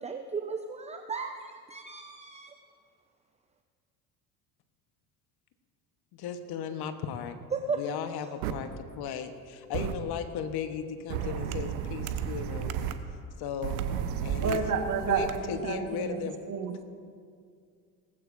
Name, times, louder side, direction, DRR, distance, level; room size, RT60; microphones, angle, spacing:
voice 1, 0.0-2.5 7.5-7.8, right 5 dB, 15° right, 6 dB, 0.7 m, -35 dB
voice 2, 6.1-7.4 7.7-12.8 13.4-13.8 14.2-14.6 15.1-16.4, left 7 dB, 55° left, 8 dB, 1.3 m, -36 dB
sound 1, 8.4-8.5 9.7-9.9 11.1-12.9 13.6-15.4, right 9 dB, 70° right, 1.0 m, -33 dB
voice 3, 14.4-16.7, right 5 dB, 40° right, 4 dB, 1.6 m, -30 dB
18.5 x 15.0 x 2.7 m, 2.2 s
hypercardioid pair, 70°, 46 cm